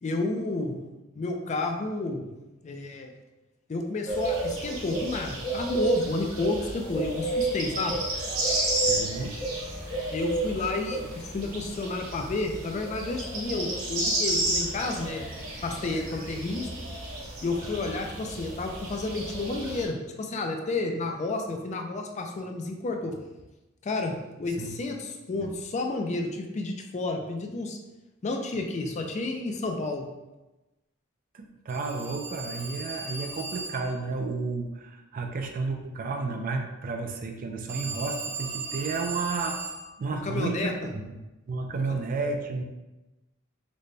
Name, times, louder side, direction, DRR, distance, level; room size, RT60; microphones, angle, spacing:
voice 1, 0.0-0.7 1.2-2.3 2.6-3.1 3.7-8.0 10.1-11.0 11.3-15.2 15.6-16.9 17.4-23.2 23.8-27.8 28.2-30.1 40.2-40.9, left 2 dB, 35° left, 3 dB, 0.4 m, -31 dB
sound 1, 4.1-19.9, right 2 dB, 70° right, 1.0 m, -31 dB
voice 2, 8.9-9.4 24.6-24.7 25.4-25.5 31.3-39.6 40.0-41.1 41.5-42.6, right 3 dB, 40° right, 4 dB, 0.4 m, -32 dB
Telephone, 31.7-34.0 37.7-39.9, right 4 dB, 10° right, 0.8 m, -37 dB
4.0 x 2.1 x 3.2 m, 1.0 s
head